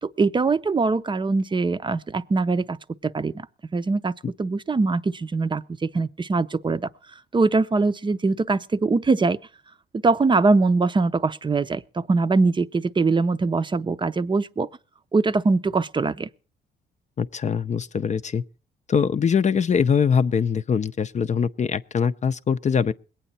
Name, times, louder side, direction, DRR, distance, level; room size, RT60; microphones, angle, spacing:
voice 1, 0.0-2.8 3.0-3.5 3.7-4.1 4.4-6.9 7.3-9.4 10.0-14.7 15.1-16.3, right 3 dB, 25° right, 0.6 m, -22 dB
voice 2, 17.2-18.4 18.9-22.9, left 6 dB, 35° left, 0.6 m, -22 dB
21.5 x 9.0 x 4.1 m
cardioid pair, 90°, 20 cm